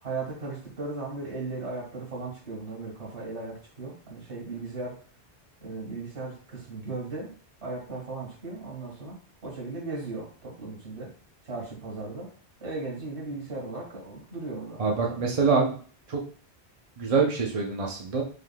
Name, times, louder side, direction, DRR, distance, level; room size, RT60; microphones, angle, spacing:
voice 1, 0.0-5.0 5.6-7.3 7.6-9.2 9.4-11.1 11.4-12.3 12.6-15.5, right 3 dB, 85° right, -3 dB, 2.0 m, -37 dB
voice 2, 14.8-15.8 16.1-16.2 17.0-18.2, right 4 dB, 40° right, 0 dB, 0.7 m, -25 dB
4.9 x 3.7 x 2.3 m, 0.43 s
omnidirectional pair, 1.1 m